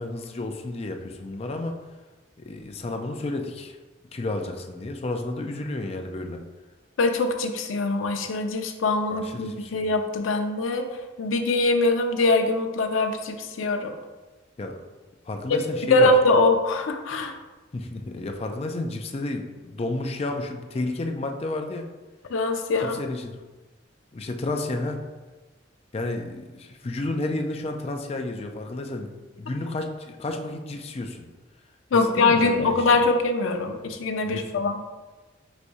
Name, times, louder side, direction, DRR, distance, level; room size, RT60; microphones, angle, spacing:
voice 1, 0.0-1.8 2.4-3.8 4.1-6.4 9.1-9.8 14.6-14.8 15.3-16.1 17.7-21.9 22.8-23.3 24.1-25.0 25.9-31.3 31.9-33.0 34.2-34.6, left 2 dB, 30° left, 4 dB, 0.4 m, -31 dB
voice 2, 7.0-10.9 11.2-13.9 15.5-17.3 22.3-23.0 29.5-29.6 31.9-34.8, left 2 dB, 85° left, 5 dB, 0.5 m, -23 dB
4.1 x 2.6 x 4.7 m, 1.2 s
head